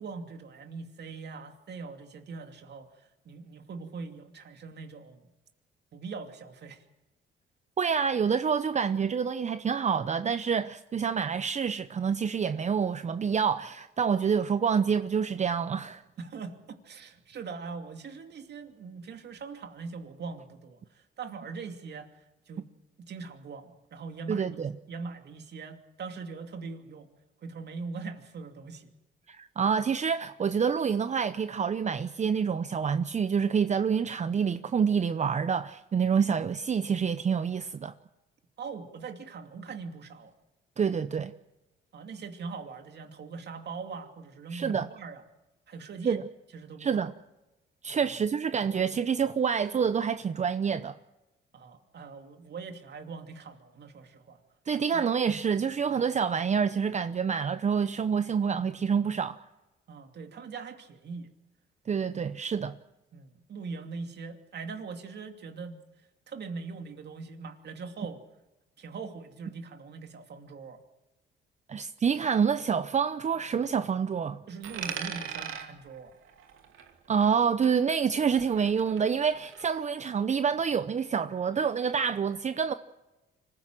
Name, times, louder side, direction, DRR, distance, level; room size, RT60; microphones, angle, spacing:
voice 1, 0.0-2.9 3.2-5.3 5.9-6.8 16.2-22.1 22.5-22.7 23.0-27.1 27.4-28.9 38.6-40.3 41.9-45.2 45.7-46.2 46.5-47.1 48.0-48.1 51.5-54.4 54.7-55.0 59.9-61.3 63.1-65.8 66.3-68.2 68.8-70.8 74.5-76.1 81.8-81.9, right 4 dB, 60° right, 2.8 m, -41 dB
voice 2, 7.8-16.0 24.3-24.7 29.3-37.9 40.8-41.3 44.5-44.9 46.0-46.3 46.8-47.1 47.8-51.0 54.7-59.4 61.9-62.7 71.7-74.4 77.1-82.7, right 6 dB, 35° right, 0.7 m, -27 dB
Coin (dropping), 74.6-77.4 77.6-79.6, right 8 dB, 80° right, 2.5 m, -41 dB
25.0 x 16.0 x 7.6 m
cardioid pair, 90°, 20 cm